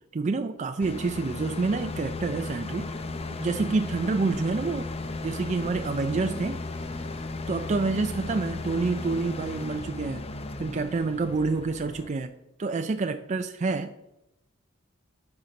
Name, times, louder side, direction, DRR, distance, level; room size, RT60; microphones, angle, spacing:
voice 1, 0.1-2.9 3.4-4.9 5.2-6.6 7.5-10.3 10.6-12.3 12.6-13.9, right 3 dB, 35° right, 7 dB, 0.4 m, -28 dB
sound 1, 0.8-12.1, left 3 dB, 30° left, 0.6 m, -35 dB
sound 2, 4.6-10.0, left 1 dB, 65° left, 2.8 m, -49 dB
10.0 x 5.8 x 4.0 m, 0.88 s
head